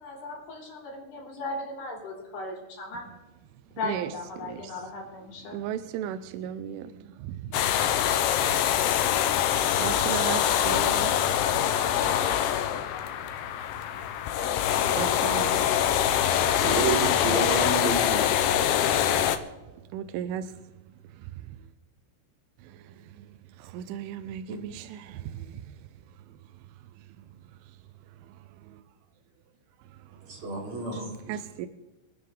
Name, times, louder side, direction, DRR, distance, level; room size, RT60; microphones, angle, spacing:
voice 1, 0.0-3.1 3.7-5.6, left 2 dB, 55° left, 5.1 m, -37 dB
voice 2, 4.4-4.7 5.5-7.6 9.6-11.1 14.9-15.7 19.1-19.2 19.9-20.5 22.7-22.8 23.2-23.3 23.6-25.6 28.7-28.8 31.3-31.7, right 10 dB, 80° right, 3.0 m, -35 dB
sound 1, 7.5-19.4, left 10 dB, 85° left, 2.3 m, -24 dB
voice 3, 16.6-18.3 30.3-31.4, right 3 dB, 30° right, 3.2 m, -30 dB
26.5 x 9.6 x 3.8 m
omnidirectional pair, 5.9 m